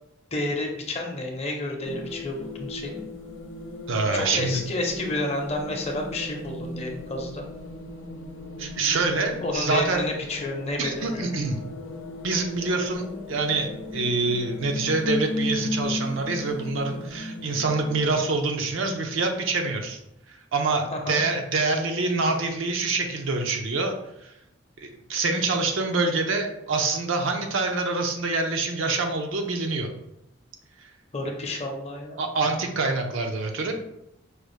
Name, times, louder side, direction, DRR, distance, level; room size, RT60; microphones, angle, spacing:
voice 1, 0.3-3.0 4.1-7.4 9.4-11.3 20.9-21.2 31.1-32.2, left 2 dB, 35° left, 1 dB, 0.6 m, -30 dB
sound 1, 1.8-18.2, left 1 dB, 75° left, 0.5 m, -36 dB
voice 2, 3.9-4.6 8.6-10.0 10.8-11.6 12.2-20.0 20.5-24.0 24.8-29.9 32.2-33.7, right 3 dB, 80° right, 4 dB, 0.6 m, -26 dB
4.8 x 2.4 x 3.1 m, 0.82 s
head